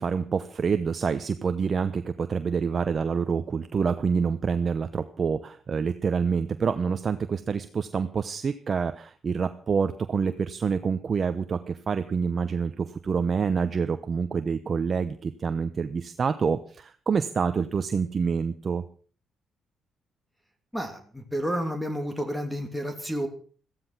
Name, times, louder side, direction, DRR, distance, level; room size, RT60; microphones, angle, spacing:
voice 1, 0.0-18.8, right 6 dB, 45° right, 10 dB, 0.9 m, -27 dB
voice 2, 20.7-23.3, equal, 5° left, 6 dB, 2.9 m, -30 dB
15.0 x 14.0 x 6.1 m, 0.43 s
cardioid pair, 90°, 0 cm